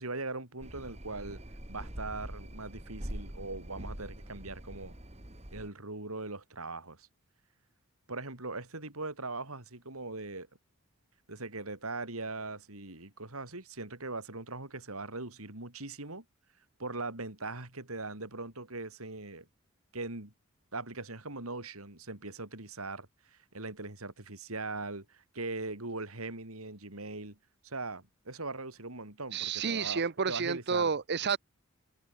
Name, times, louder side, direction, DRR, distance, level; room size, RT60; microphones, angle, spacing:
voice 1, 0.0-1.4 1.7-4.9 5.5-7.1 8.1-10.5 11.3-16.2 16.8-19.5 19.9-20.3 20.7-27.4 27.6-30.0 30.3-30.9, right 3 dB, 75° right, 4.3 m, -40 dB
sound 1, 0.6-5.7, equal, 30° right, 3.0 m, -44 dB
voice 2, 29.3-31.4, right 6 dB, 50° right, 0.8 m, -30 dB
head